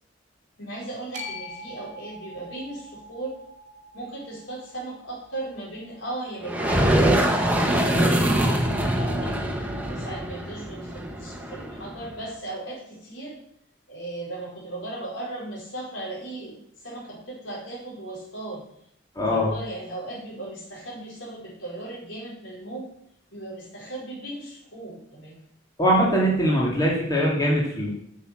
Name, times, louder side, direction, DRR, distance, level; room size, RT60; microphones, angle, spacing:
voice 1, 0.6-3.4 3.9-13.4 13.9-18.6 19.3-22.9 23.3-25.4, right 2 dB, 75° left, -3 dB, 4.7 m, -37 dB
sound 1, 1.1-7.4, left 1 dB, 40° right, 2.4 m, -44 dB
sound 2, 6.4-12.1, right 1 dB, 10° right, 1.3 m, -23 dB
voice 2, 19.2-19.5 25.8-27.9, equal, 20° left, -4 dB, 2.5 m, -21 dB
8.4 x 7.4 x 7.6 m, 0.70 s
head